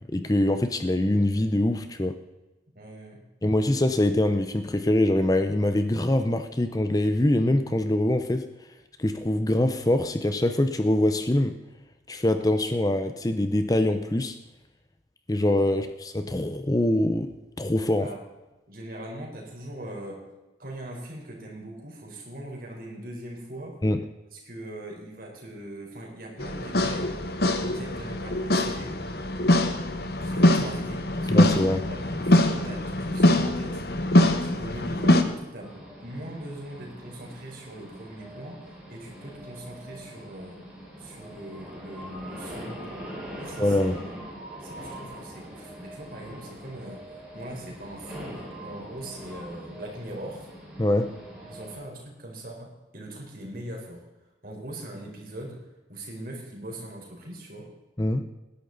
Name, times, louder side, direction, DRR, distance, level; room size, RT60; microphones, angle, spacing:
voice 1, 0.1-2.2 3.4-8.5 9.0-11.6 12.1-14.4 15.3-17.3 17.6-18.1 23.8-24.0 31.3-31.8 43.6-44.0 50.8-51.1 58.0-58.2, left 1 dB, 20° left, 8 dB, 0.6 m, -24 dB
voice 2, 2.7-3.2 15.7-15.8 18.0-18.2 18.7-20.3 20.6-23.8 24.3-27.1 27.6-29.0 30.2-34.1 34.4-40.6 41.0-43.1 43.4-44.1 44.6-50.5 51.5-54.0 54.4-55.6 55.9-57.7, right 1 dB, 50° right, 0 dB, 4.2 m, -41 dB
sound 1, 26.4-35.2, left 1 dB, 55° left, 1.2 m, -23 dB
sound 2, 35.6-51.8, equal, 5° right, 5.0 m, -42 dB
19.5 x 11.0 x 4.0 m, 1.1 s
head